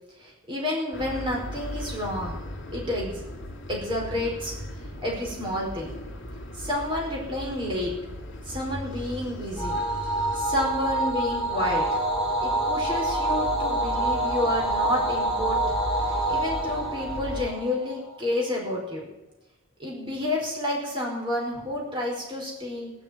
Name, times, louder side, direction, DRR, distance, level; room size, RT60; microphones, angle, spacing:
voice 1, 0.2-2.4 2.7-3.2 3.7-4.5 5.0-5.9 6.5-7.9 8.4-9.8 10.3-12.0 12.4-15.6 15.9-19.0 19.8-22.9, left 1 dB, 25° right, -2 dB, 4.9 m, -30 dB
sound 1, 0.9-17.5, equal, 60° left, 3.1 m, -38 dB
sound 2, 9.6-18.2, right 1 dB, 5° right, 2.5 m, -27 dB
18.0 x 7.1 x 9.0 m, 1.0 s
head